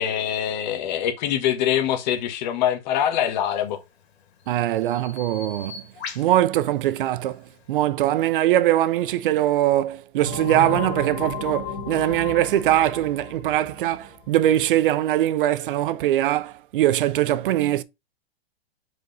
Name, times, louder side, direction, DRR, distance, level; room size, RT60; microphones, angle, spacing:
voice 1, 0.0-3.8, left 10 dB, 45° left, 1.4 m, -24 dB
Bird vocalization bird call bird song, 3.6-7.8, left 5 dB, 70° left, 2.5 m, -43 dB
voice 2, 4.5-5.8 6.1-17.8, right 13 dB, 55° right, 0.6 m, -22 dB
sound 1, 10.2-14.6, left 3 dB, 25° left, 2.0 m, -33 dB
5.0 x 4.8 x 4.0 m
hypercardioid pair, 155°, 33 cm